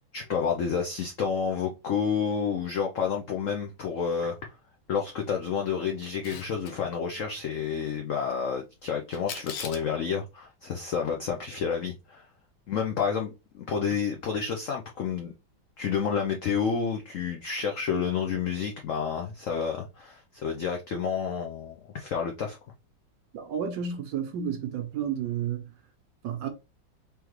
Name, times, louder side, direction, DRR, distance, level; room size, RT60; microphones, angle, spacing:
voice 1, 0.1-4.5 4.9-12.3 12.7-15.3 15.8-22.6, left 6 dB, 90° left, 0.6 m, -30 dB
Camera, 6.0-6.7 9.1-9.9, left 7 dB, 70° left, 1.2 m, -39 dB
voice 2, 23.3-25.6 26.2-26.5, right 8 dB, 75° right, 1.2 m, -31 dB
3.6 x 3.1 x 3.0 m
omnidirectional pair, 2.1 m